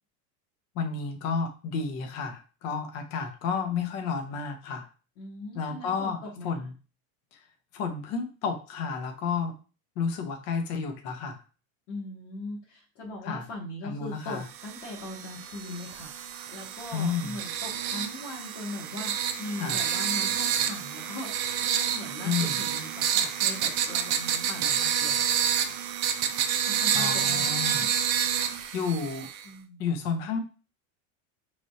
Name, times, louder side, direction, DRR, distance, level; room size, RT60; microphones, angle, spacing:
voice 1, 0.7-4.9 5.5-6.2 6.4-6.7 7.7-9.5 10.0-11.4 13.3-13.4 13.8-14.4 16.9-17.4 19.6-19.8 22.2-22.5 26.9-27.8 28.7-29.3 29.8-30.4, left 5 dB, 40° left, 4 dB, 0.9 m, -31 dB
voice 2, 5.2-6.7 11.9-25.8 26.6-28.8 29.4-29.9, left 2 dB, 60° left, -5 dB, 1.3 m, -40 dB
sound 1, 14.5-29.4, right 8 dB, 45° right, 0.5 m, -29 dB
6.0 x 3.2 x 2.7 m, 0.34 s
supercardioid pair, 175°, 39 cm